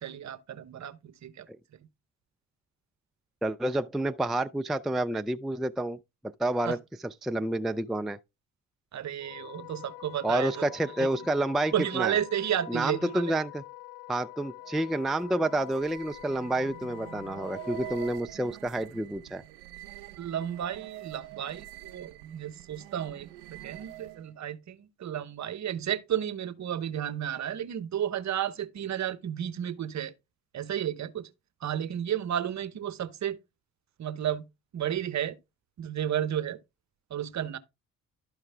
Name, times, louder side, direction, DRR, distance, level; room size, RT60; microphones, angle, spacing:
voice 1, 0.0-1.5 6.6-6.8 8.9-10.7 11.0-11.1 11.7-13.3 20.2-30.1 30.5-31.3 31.6-33.4 34.0-34.5 34.7-35.4 35.8-36.6 37.1-37.6, right 10 dB, 45° right, 0.9 m, -32 dB
voice 2, 3.4-6.0 6.4-8.2 10.2-12.2 12.7-13.6 14.1-19.4, right 1 dB, ahead, 0.4 m, -29 dB
Wind instrument woodwind instrument, 9.2-18.2, left 19 dB, 85° left, 0.6 m, -46 dB
sound 1, 14.6-24.3, right 16 dB, 75° right, 0.6 m, -46 dB
12.0 x 4.8 x 3.3 m
hypercardioid pair, 55°, 39 cm